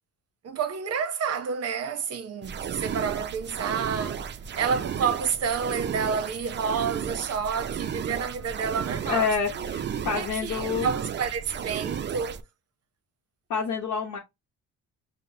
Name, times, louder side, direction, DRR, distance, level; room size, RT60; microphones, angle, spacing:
voice 1, 0.4-12.4, right 6 dB, 55° right, 0.8 m, -30 dB
sound 1, 2.4-12.4, right 8 dB, 40° right, 0.4 m, -34 dB
voice 2, 9.1-10.9 13.5-14.2, left 6 dB, 75° left, 0.8 m, -28 dB
5.5 x 2.1 x 2.7 m
cardioid pair, 90°, 30 cm